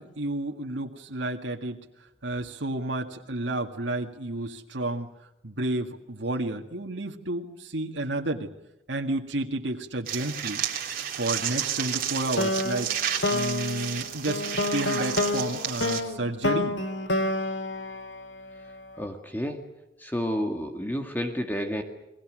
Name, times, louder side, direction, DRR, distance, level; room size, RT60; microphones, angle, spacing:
voice 1, 0.0-1.9 2.2-5.1 5.4-8.5 8.9-10.6 11.1-13.0 13.3-16.8, right 2 dB, 90° right, 2 dB, 2.0 m, -31 dB
sound 1, 10.1-16.0, right 9 dB, 55° right, 3.4 m, -31 dB
sound 2, 12.4-18.8, left 2 dB, 75° left, 2.3 m, -29 dB
voice 2, 19.0-19.6 20.0-21.8, equal, 10° left, 4 dB, 2.0 m, -30 dB
30.0 x 22.0 x 6.4 m, 0.93 s
head